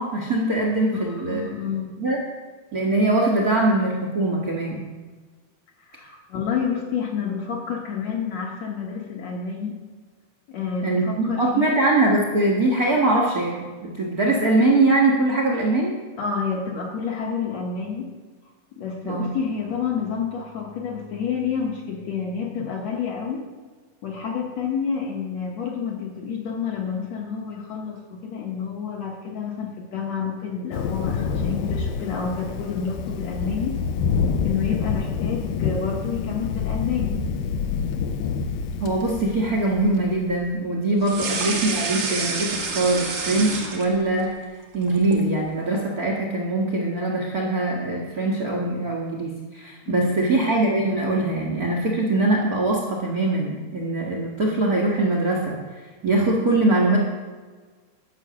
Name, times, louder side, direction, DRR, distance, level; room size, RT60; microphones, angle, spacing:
voice 1, 0.0-2.2 2.7-4.8 10.8-15.9 19.0-19.3 38.8-44.3 44.7-55.6 56.0-57.0, right 2 dB, 80° right, -2 dB, 0.8 m, -22 dB
voice 2, 0.9-2.0 4.6-4.9 5.9-9.8 10.5-11.8 16.2-18.1 18.7-23.4 24.0-33.7 34.4-37.2 41.1-41.3 49.9-50.3, left 6 dB, 65° left, 0 dB, 1.8 m, -29 dB
Thunder, 30.7-40.4, left 6 dB, 80° left, 2.4 m, -27 dB
sound 1, 41.0-44.2 44.6-45.3, right 4 dB, 60° right, 1.1 m, -28 dB
12.0 x 6.3 x 6.8 m, 1.4 s
omnidirectional pair, 4.3 m